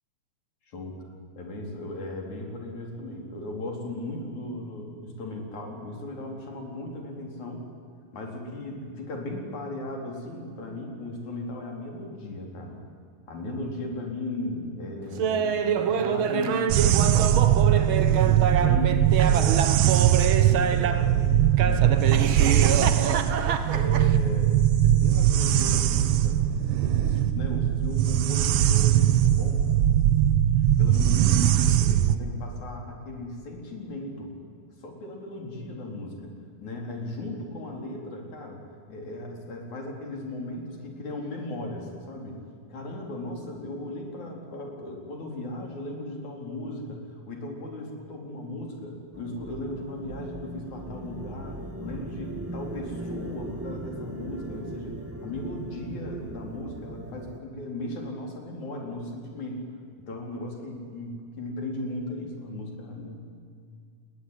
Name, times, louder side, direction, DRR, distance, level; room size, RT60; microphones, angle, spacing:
voice 1, 0.7-1.0 1.3-7.7 8.1-12.8 13.3-23.3 23.7-24.5 24.8-26.4 26.8-29.6 30.6-34.3 34.8-36.3 36.6-38.6 38.9-42.4 42.7-59.6 60.1-63.1, left 1 dB, 65° left, 1 dB, 5.5 m, -37 dB
Laughter, 15.2-21.1 21.6-24.2, right 7 dB, 55° right, 1.6 m, -27 dB
sound 1, 16.7-32.2, right 11 dB, 80° right, 1.3 m, -21 dB
sound 2, 49.1-57.4, right 1 dB, 10° right, 0.7 m, -39 dB
27.5 x 22.0 x 9.9 m, 2.2 s
omnidirectional pair, 3.7 m